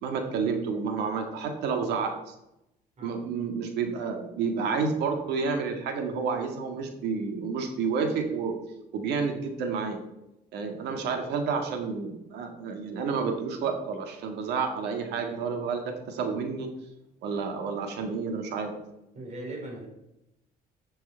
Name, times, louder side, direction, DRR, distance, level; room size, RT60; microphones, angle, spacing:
voice 1, 0.0-2.3 3.0-8.6 8.9-10.0 10.5-16.7 17.2-18.7, right 5 dB, 85° right, 5 dB, 1.8 m, -30 dB
voice 2, 19.1-19.9, right 1 dB, 45° right, 0 dB, 4.2 m, -39 dB
10.5 x 6.8 x 4.5 m, 0.87 s
cardioid pair, 110°, 17 cm